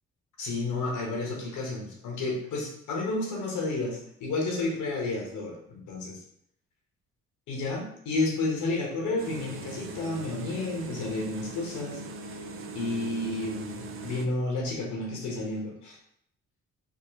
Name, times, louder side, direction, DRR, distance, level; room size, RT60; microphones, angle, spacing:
voice 1, 0.4-6.2 7.5-12.0 12.3-12.4 12.7-16.0, left 2 dB, 80° left, -1 dB, 1.0 m, -31 dB
sound 1, 9.2-14.3, right 3 dB, 45° right, 0.4 m, -40 dB
3.6 x 2.1 x 3.1 m, 0.70 s
cardioid pair, 90°, 30 cm